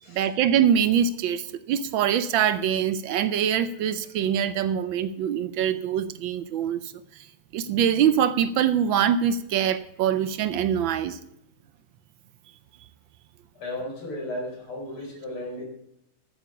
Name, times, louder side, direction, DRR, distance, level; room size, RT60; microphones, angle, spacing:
voice 1, 0.1-6.9 7.5-11.2, right 9 dB, 75° right, 13 dB, 1.3 m, -24 dB
voice 2, 13.5-15.7, left 1 dB, 85° left, 1 dB, 5.0 m, -34 dB
12.0 x 9.2 x 5.9 m, 0.82 s
omnidirectional pair, 2.3 m